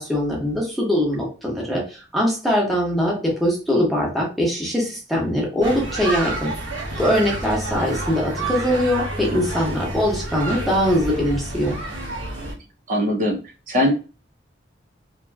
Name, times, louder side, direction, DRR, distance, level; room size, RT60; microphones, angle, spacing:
voice 1, 0.0-1.8 2.1-6.5 7.0-11.8, equal, ahead, -3 dB, 0.9 m, -22 dB
sound 1, 5.6-12.5, right 2 dB, 85° right, 1.0 m, -29 dB
voice 2, 12.9-13.4 13.7-13.9, left 1 dB, 45° right, 0 dB, 0.5 m, -20 dB
2.7 x 2.5 x 2.2 m, 0.34 s
head